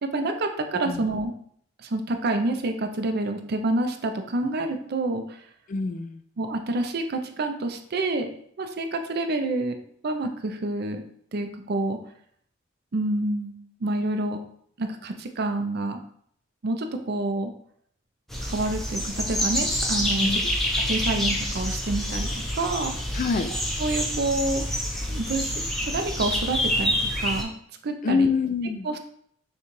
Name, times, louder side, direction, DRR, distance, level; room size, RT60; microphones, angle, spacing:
voice 1, 0.0-1.3 1.8-5.4 6.4-8.3 8.6-9.8 10.0-11.0 11.3-12.0 12.9-14.4 14.8-16.0 16.6-17.5 18.4-20.4 20.7-22.3 22.5-22.9 23.8-24.6 25.1-27.5 27.8-28.3 28.8-29.0, right 2 dB, 55° right, 6 dB, 0.5 m, -28 dB
voice 2, 5.7-6.2 20.2-20.4 23.1-23.5 28.0-28.9, left 4 dB, 45° left, 9 dB, 0.3 m, -25 dB
sound 1, 18.3-27.4, equal, ahead, 0.7 m, -27 dB
6.4 x 2.3 x 3.1 m, 0.65 s
head